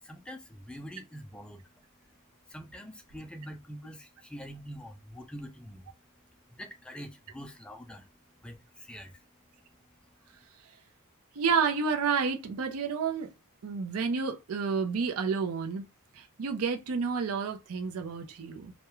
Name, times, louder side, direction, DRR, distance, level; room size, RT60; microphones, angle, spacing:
voice 1, 0.0-1.7 2.4-5.9 6.5-9.3 9.7-10.3, equal, 5° left, 0.3 m, -45 dB
voice 2, 11.4-13.3 13.6-15.8 16.1-18.7, right 5 dB, 70° right, 0.4 m, -30 dB
2.3 x 2.1 x 2.9 m
head